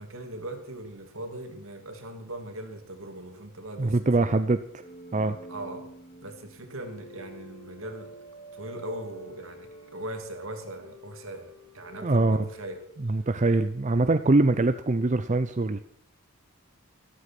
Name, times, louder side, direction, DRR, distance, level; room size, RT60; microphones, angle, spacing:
voice 1, 0.0-4.0 5.5-5.9 6.2-8.2 8.5-12.8, right 1 dB, 70° right, 5 dB, 2.7 m, -40 dB
voice 2, 3.8-4.6 5.1-5.4 12.0-12.5 13.0-15.8, right 2 dB, 35° right, 10 dB, 0.6 m, -23 dB
sound 1, 4.8-13.8, right 1 dB, 30° left, 5.2 m, -47 dB
13.5 x 13.0 x 6.0 m, 0.65 s
head